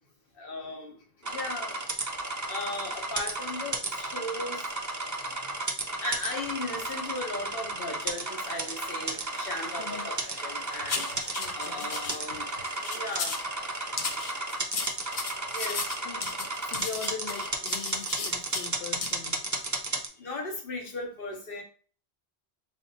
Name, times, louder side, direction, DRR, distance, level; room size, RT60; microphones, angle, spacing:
voice 1, 0.4-1.8 2.5-4.7 6.0-11.1 11.5-12.5 12.8-13.4 15.5-16.0 19.5-21.6, left 2 dB, 60° left, 1.2 m, -37 dB
sound 1, 1.2-20.1, right 2 dB, 30° right, 0.3 m, -33 dB
Applause, 8.0-14.7, right 3 dB, 45° right, 0.9 m, -49 dB
sound 2, 10.9-12.2 12.6-13.5 14.0-18.7 19.0-19.1 19.5-19.7, left 4 dB, 45° left, 0.5 m, -35 dB
voice 2, 11.4-11.9 16.0-19.4, left 6 dB, 75° left, 0.9 m, -41 dB
4.1 x 3.4 x 2.8 m
omnidirectional pair, 1.1 m